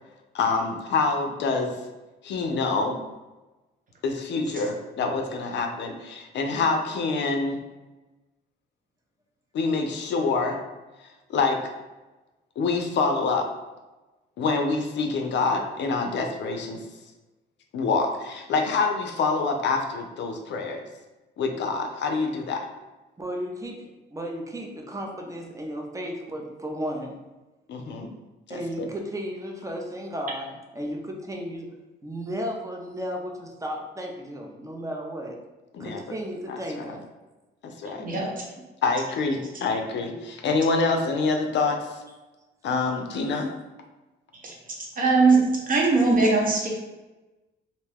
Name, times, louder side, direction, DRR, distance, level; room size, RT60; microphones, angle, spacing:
voice 1, 0.3-1.7 2.2-3.0 4.0-7.6 9.5-10.6 11.3-11.6 12.6-13.5 14.4-16.8 17.7-20.8 21.4-22.7 27.7-28.1 28.5-28.9 35.7-36.0 36.5-37.0 37.6-38.0 38.8-42.0 42.6-43.5, left 4 dB, 65° left, 4 dB, 0.5 m, -26 dB
voice 2, 23.2-27.2 28.5-31.7 32.0-35.4 35.8-37.0 43.1-43.2, equal, 15° right, 1 dB, 0.5 m, -34 dB
voice 3, 45.0-45.4 45.7-46.8, right 3 dB, 45° right, -2 dB, 0.9 m, -20 dB
2.6 x 2.2 x 3.4 m, 1.1 s
cardioid pair, 90°, 20 cm